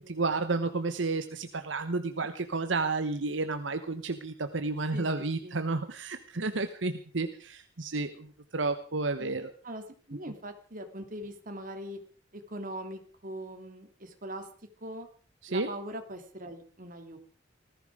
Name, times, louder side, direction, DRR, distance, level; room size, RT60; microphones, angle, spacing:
voice 1, 0.0-8.3 8.5-9.5 15.4-15.7, right 3 dB, 80° right, 9 dB, 1.1 m, -31 dB
voice 2, 4.9-5.7 9.2-12.0 12.3-14.5 14.8-15.1 15.5-17.2, right 1 dB, 45° right, 6 dB, 3.0 m, -42 dB
19.5 x 15.0 x 4.9 m, 0.42 s
head